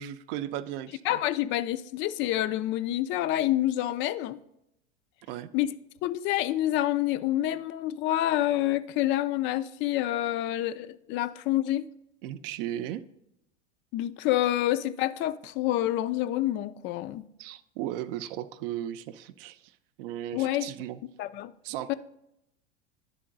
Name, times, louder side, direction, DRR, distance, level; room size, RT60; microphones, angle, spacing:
voice 1, 0.0-1.2 5.3-5.5 12.2-13.0 17.4-19.6 20.0-21.0 21.6-21.9, right 12 dB, 55° right, 0.5 m, -36 dB
voice 2, 1.1-4.4 5.5-5.7 6.0-11.9 13.9-17.3 20.3-20.7 21.2-21.5 21.9-22.0, left 14 dB, 35° left, 0.4 m, -27 dB
10.5 x 3.8 x 3.8 m
hypercardioid pair, 95°, 33 cm